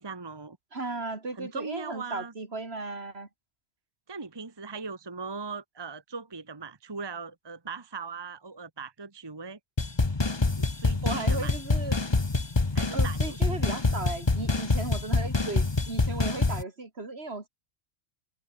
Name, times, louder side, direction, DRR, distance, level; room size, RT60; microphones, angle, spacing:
voice 1, 0.0-0.6 1.3-2.3 4.1-9.6 10.6-11.5 12.7-13.6, right 4 dB, 25° right, 1.1 m, -39 dB
voice 2, 0.7-3.3 11.0-12.0 12.9-17.5, right 3 dB, 60° right, 3.2 m, -36 dB
sound 1, 9.8-16.6, left 3 dB, 25° left, 1.2 m, -26 dB
omnidirectional pair, 1.2 m